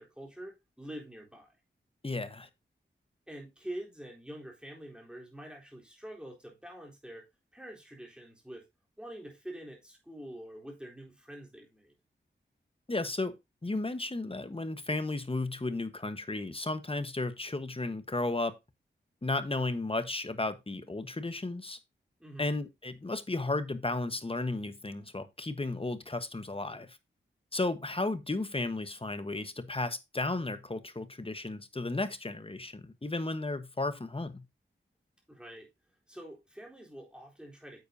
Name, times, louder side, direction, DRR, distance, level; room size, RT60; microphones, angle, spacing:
voice 1, 0.0-1.5 3.3-7.3 7.5-8.7 9.0-11.9 22.2-22.5 35.3-35.7 36.1-37.8, right 1 dB, 5° right, 3.8 m, -46 dB
voice 2, 2.0-2.5 12.9-13.3 13.6-18.6 19.2-21.8 22.4-27.0 27.5-34.4, left 2 dB, 30° left, 1.2 m, -34 dB
9.3 x 7.9 x 2.7 m
cardioid pair, 55°, 20 cm